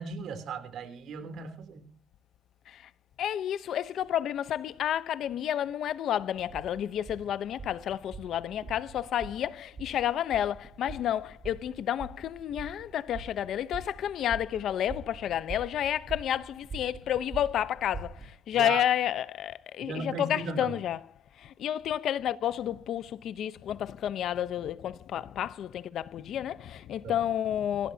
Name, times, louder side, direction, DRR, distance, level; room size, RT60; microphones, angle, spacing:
voice 1, 0.0-1.9 18.5-18.8 19.8-20.8 27.0-27.1, right 4 dB, 75° right, 3.3 m, -37 dB
voice 2, 3.2-21.0 21.4-27.9, left 10 dB, 75° left, 0.8 m, -31 dB
sound 1, 6.3-18.3, right 3 dB, 35° right, 7.5 m, -45 dB
24.5 x 16.0 x 2.8 m
cardioid pair, 90°, 0 cm